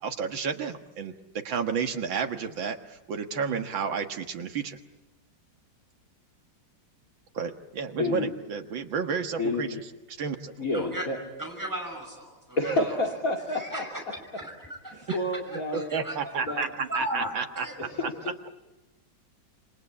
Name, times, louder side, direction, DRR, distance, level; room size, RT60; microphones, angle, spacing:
voice 1, 0.0-4.8 7.3-9.8 10.2-10.5 15.7-17.7, right 6 dB, 80° right, 6 dB, 2.3 m, -31 dB
voice 2, 8.0-8.3 9.4-9.8 10.6-11.2 12.6-13.8 15.1-15.9 16.4-16.7 17.8-18.3, left 2 dB, 45° left, 2 dB, 3.0 m, -29 dB
voice 3, 10.7-11.1 11.4-13.0 13.5-14.0 14.3-15.2 15.5-16.5 16.9-17.7, right 1 dB, 10° right, 1 dB, 5.8 m, -36 dB
27.5 x 25.0 x 8.5 m, 1.0 s
omnidirectional pair, 2.1 m